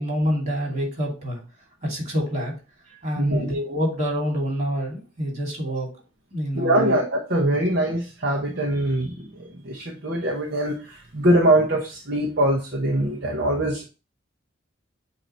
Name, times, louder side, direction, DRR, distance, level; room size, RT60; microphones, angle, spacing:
voice 1, 0.0-1.4 1.8-2.5 2.9-5.9 6.3-7.0 7.5-7.6, equal, 35° right, -1 dB, 2.7 m, -27 dB
voice 2, 3.2-3.5 6.5-13.8, right 1 dB, 55° right, -2 dB, 1.0 m, -23 dB
7.8 x 2.8 x 4.4 m, 0.33 s
head